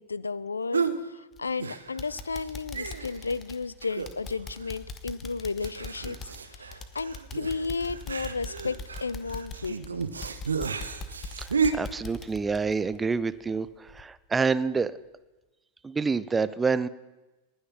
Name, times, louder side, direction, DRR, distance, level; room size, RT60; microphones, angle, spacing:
voice 1, 0.0-10.0, left 4 dB, 75° left, 19 dB, 0.4 m, -33 dB
sound 1, 0.7-1.0 1.6-2.1 2.4-2.5 2.7-3.3 3.8-4.3 4.6-4.7 5.6-11.7, right 5 dB, 75° right, 0.8 m, -32 dB
sound 2, 1.3-1.6 2.0-13.6 13.9-14.0 14.5-14.6, left 3 dB, 25° left, 1.1 m, -42 dB
voice 2, 11.4-15.0 15.8-16.9, right 4 dB, 15° right, 16 dB, 0.5 m, -28 dB
19.0 x 6.5 x 6.0 m, 1.1 s
figure-of-eight pair, 90°, 0 cm